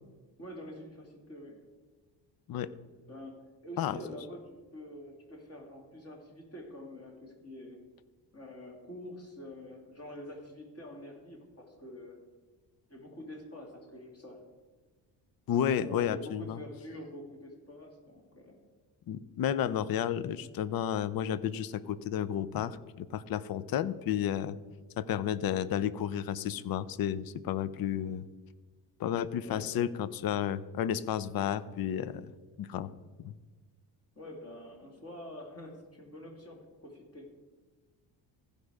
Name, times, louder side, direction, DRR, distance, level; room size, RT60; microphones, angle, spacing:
voice 1, 0.4-1.6 3.1-7.8 8.3-12.2 12.9-14.4 15.8-18.6 29.4-29.9 34.2-37.3, left 1 dB, 35° left, 1 dB, 2.7 m, -46 dB
voice 2, 15.5-16.6 19.1-24.6 25.0-28.2 29.0-32.2 32.6-32.9 33.2-33.3, left 9 dB, 55° left, 17 dB, 0.6 m, -32 dB
15.5 x 5.3 x 4.8 m, 1.3 s
cardioid pair, 90°, 44 cm